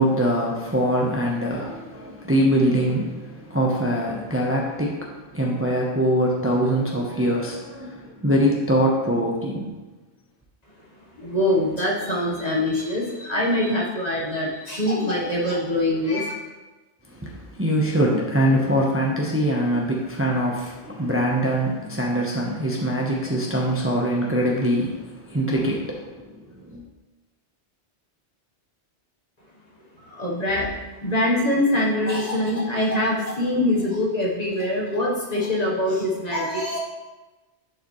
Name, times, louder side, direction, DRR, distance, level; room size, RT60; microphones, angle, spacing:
voice 1, 0.0-9.7 17.1-26.8, equal, 15° right, -2 dB, 0.8 m, -23 dB
voice 2, 11.2-16.3 30.2-30.7 31.0-36.8, left 1 dB, 35° left, -3 dB, 1.3 m, -23 dB
10.5 x 4.9 x 3.1 m, 1.2 s
omnidirectional pair, 1.2 m